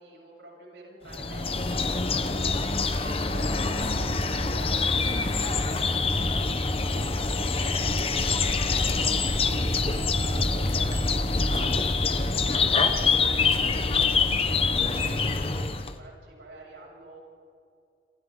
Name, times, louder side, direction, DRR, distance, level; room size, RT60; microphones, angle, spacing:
voice 1, 0.0-3.6 4.2-11.1 11.4-17.2, right 2 dB, 90° right, -2 dB, 7.4 m, -47 dB
sound 1, 1.1-16.0, left 3 dB, 30° left, 1.0 m, -25 dB
sound 2, 7.3-11.5, equal, 55° left, 5.9 m, -43 dB
27.5 x 27.5 x 3.9 m, 2.4 s
head